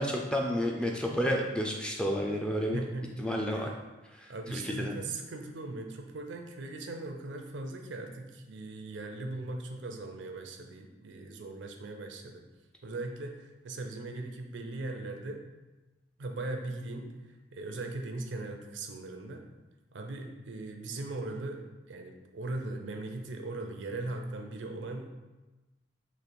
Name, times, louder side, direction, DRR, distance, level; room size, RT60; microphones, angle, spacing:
voice 1, 0.0-2.8 3.2-3.7 4.1-5.0, equal, 5° left, 0 dB, 0.3 m, -31 dB
voice 2, 2.7-3.2 3.5-3.7 4.3-12.4 12.8-15.4 16.2-19.4 19.9-25.1, right 2 dB, 75° right, 4 dB, 0.5 m, -39 dB
3.2 x 2.9 x 4.2 m, 1.1 s
head